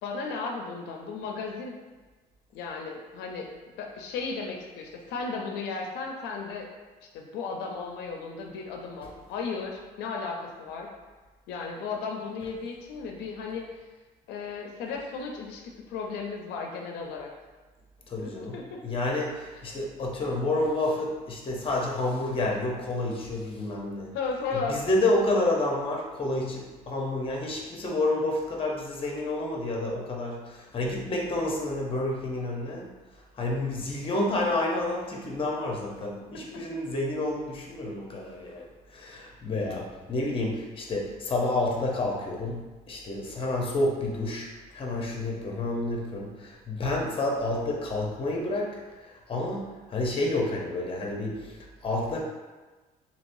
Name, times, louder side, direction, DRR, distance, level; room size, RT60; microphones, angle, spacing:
voice 1, 0.0-1.7 2.5-3.5 3.8-6.7 7.1-10.9 11.5-13.6 14.3-15.6 15.9-17.3 18.5-18.8 24.1-24.8 36.3-36.6, left 4 dB, 85° left, 1 dB, 0.4 m, -35 dB
voice 2, 18.1-18.6 18.8-24.2 24.5-32.9 33.1-52.2, left 2 dB, 30° left, -1 dB, 0.7 m, -29 dB
3.1 x 2.8 x 2.6 m, 1.3 s
cardioid pair, 110°, 17 cm